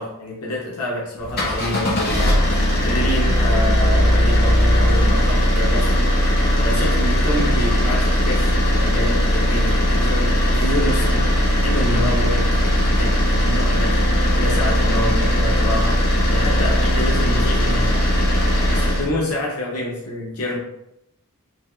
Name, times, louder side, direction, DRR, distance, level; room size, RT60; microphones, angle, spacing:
voice 1, 0.0-14.0 14.4-18.0 18.7-20.6, left 1 dB, 90° left, -3 dB, 0.7 m, -27 dB
sound 1, 1.2-19.1, equal, 45° left, 0.8 m, -18 dB
3.4 x 2.8 x 2.2 m, 0.80 s
head